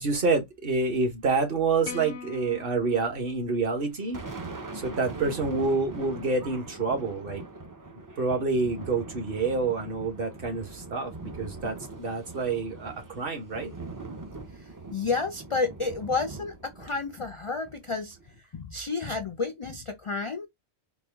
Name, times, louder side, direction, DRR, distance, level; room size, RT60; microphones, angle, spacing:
voice 1, 0.0-4.2 4.7-7.4 8.2-13.7, right 4 dB, 55° right, 1.3 m, -28 dB
sound 1, 1.8-4.2, left 7 dB, 85° left, 1.1 m, -43 dB
Thunder, 3.8-18.4, right 3 dB, 25° right, 0.4 m, -42 dB
voice 2, 14.5-20.5, left 4 dB, 45° left, 0.4 m, -31 dB
4.1 x 2.3 x 3.4 m
omnidirectional pair, 1.1 m